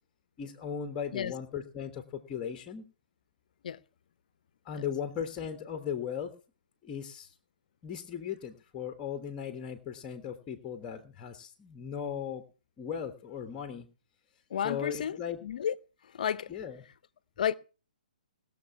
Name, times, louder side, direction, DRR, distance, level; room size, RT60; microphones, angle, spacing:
voice 1, 0.4-2.9 4.6-6.3 6.8-7.3 7.8-12.4 12.8-13.9 14.6-15.4 16.5-16.8, left 8 dB, 20° left, 1.3 m, -37 dB
voice 2, 14.5-15.7 16.1-16.5 17.4-17.6, left 9 dB, 60° left, 0.7 m, -32 dB
19.0 x 6.9 x 5.7 m
hypercardioid pair, 140°, 5 cm